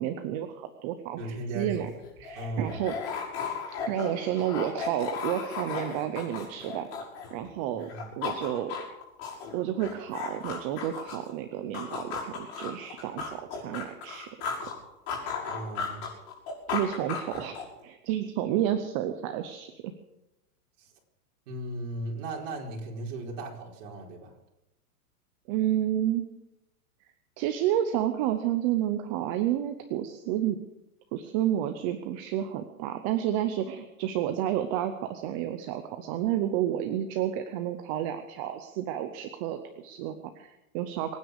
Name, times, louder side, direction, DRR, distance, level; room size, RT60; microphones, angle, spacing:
voice 1, 0.0-1.9 2.2-2.9 3.9-6.9 7.3-7.9 8.2-8.7 9.5-14.3 16.7-19.9 25.5-26.3 27.4-30.6 31.1-41.2, right 11 dB, 25° right, 8 dB, 0.6 m, -30 dB
voice 2, 1.2-1.8 2.3-2.8 7.7-8.1 15.5-16.0 20.8-20.9 21.5-24.3, right 2 dB, 50° right, -1 dB, 4.7 m, -37 dB
sound 1, 1.7-7.5 7.8-11.3 11.7-14.8 15.1-17.8, left 5 dB, 40° left, 6.0 m, -35 dB
23.5 x 9.5 x 6.5 m, 0.95 s
supercardioid pair, 160°, 46 cm